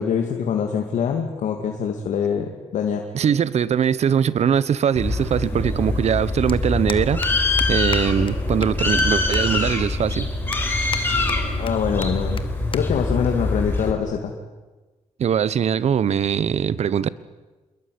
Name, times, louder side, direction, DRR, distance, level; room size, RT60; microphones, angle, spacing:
voice 1, 0.0-3.0 11.6-12.4 12.7-14.3, left 7 dB, 85° left, 3 dB, 2.5 m, -24 dB
voice 2, 3.1-7.2 7.7-10.3 15.2-17.1, right 8 dB, 65° right, 18 dB, 1.1 m, -21 dB
sound 1, 4.2-4.3 5.7-5.8 6.0-6.2 6.5-6.6 6.9-7.3 7.6-7.7 7.9-8.0 8.3-8.4 8.6-9.1 9.3-9.4 9.9-10.0 10.5-11.0 11.3-11.7 12.0-12.1 12.4-12.5 12.7-12.8 13.1-13.4 14.2-14.4, left 6 dB, 45° left, 1.6 m, -33 dB
Bird, 5.0-13.9, left 2 dB, 15° left, 5.3 m, -24 dB
27.0 x 21.5 x 9.6 m, 1.2 s
cardioid pair, 115°, 12 cm